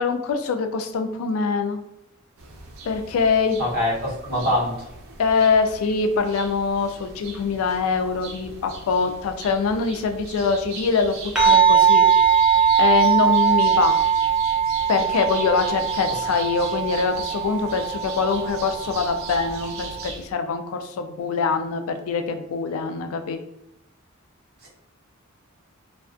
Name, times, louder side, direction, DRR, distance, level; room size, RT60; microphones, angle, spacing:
voice 1, 0.0-1.8 2.9-3.6 5.2-12.0 12.8-14.0 14.9-23.4, left 5 dB, 85° left, 7 dB, 0.3 m, -24 dB
sound 1, 2.4-20.3, right 3 dB, 90° right, 0.5 m, -39 dB
voice 2, 3.6-4.7 24.6-24.7, left 1 dB, 50° right, -4 dB, 1.0 m, -23 dB
sound 2, 11.4-20.0, right 7 dB, 5° right, 0.5 m, -20 dB
2.3 x 2.3 x 2.4 m, 0.87 s
head